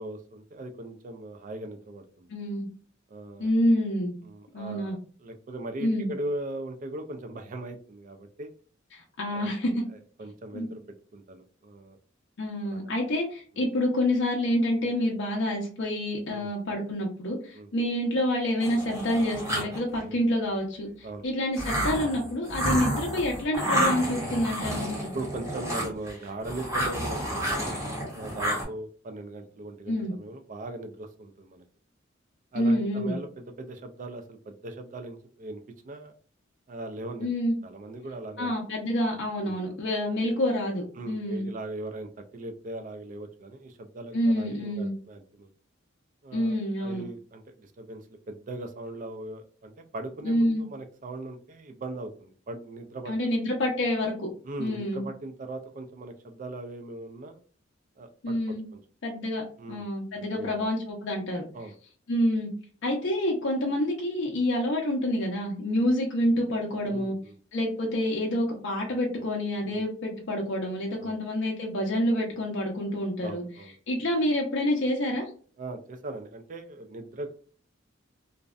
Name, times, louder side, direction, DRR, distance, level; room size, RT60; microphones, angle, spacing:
voice 1, 0.0-2.3 3.1-3.5 4.2-8.5 9.3-9.5 9.9-10.8 11.1-12.0 12.6-13.0 16.3-16.5 17.5-17.7 20.0-20.2 21.0-21.3 25.1-27.8 28.2-31.6 32.5-36.1 36.7-37.3 37.6-38.5 39.4-39.6 41.0-45.5 46.2-53.1 54.4-57.4 58.0-58.8 59.6-59.8 60.2-60.7 61.5-61.8 65.8-65.9 66.8-67.4 69.7-69.8 71.0-71.2 73.2-73.7 75.6-77.3, right 2 dB, 40° right, 6 dB, 0.4 m, -39 dB
voice 2, 2.3-2.7 3.4-4.2 4.5-5.0 5.8-6.1 8.9-9.8 10.5-10.7 12.4-24.9 29.9-30.1 32.5-33.2 37.2-37.5 38.4-41.5 44.1-44.9 46.3-47.0 50.2-50.6 53.1-54.3 54.6-55.1 58.2-58.6 59.0-61.4 62.1-62.5 62.8-67.1 67.5-73.4 73.9-75.2, left 1 dB, 60° left, -1 dB, 0.5 m, -27 dB
sound 1, 18.6-20.0 21.6-26.1 26.4-28.6, equal, 15° right, 0.8 m, -30 dB
2.6 x 2.1 x 2.3 m, 0.43 s
head